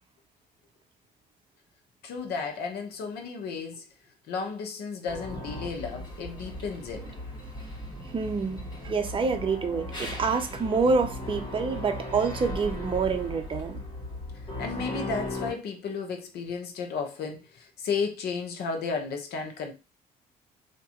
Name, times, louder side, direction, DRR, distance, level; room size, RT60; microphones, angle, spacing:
voice 1, 2.0-3.8 4.3-7.1 14.6-19.7, left 5 dB, 70° left, 1.0 m, -33 dB
sound 1, 5.1-15.5, left 1 dB, 25° left, 2.2 m, -37 dB
voice 2, 8.1-13.8, right 4 dB, 30° right, 0.7 m, -27 dB
3.6 x 2.9 x 2.9 m
cardioid pair, 110°, 17 cm